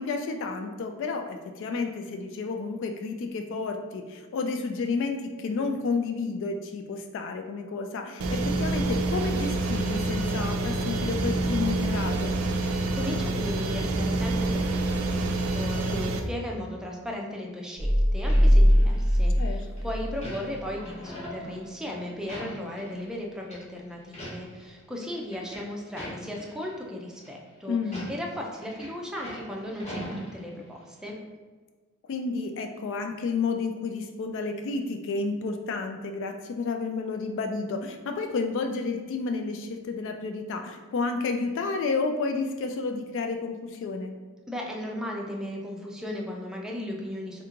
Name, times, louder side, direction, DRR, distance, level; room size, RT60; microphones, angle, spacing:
voice 1, 0.0-12.3 19.4-19.7 27.7-28.1 32.1-44.1, left 4 dB, 55° left, 5 dB, 0.3 m, -31 dB
sound 1, 8.2-16.2, right 2 dB, 70° right, 0.4 m, -27 dB
voice 2, 12.7-27.8 28.1-31.2 44.5-47.4, left 1 dB, 5° right, -1 dB, 0.5 m, -36 dB
sound 2, 17.8-20.3 20.7-20.8, equal, 75° left, 1.4 m, -21 dB
sound 3, 18.3-19.4 19.8-23.2 23.4-23.6 24.0-24.7 24.9-26.7 27.1-27.3 27.8-30.8 31.0-31.1, equal, 30° left, 1.1 m, -41 dB
3.4 x 3.0 x 3.7 m, 1.4 s
head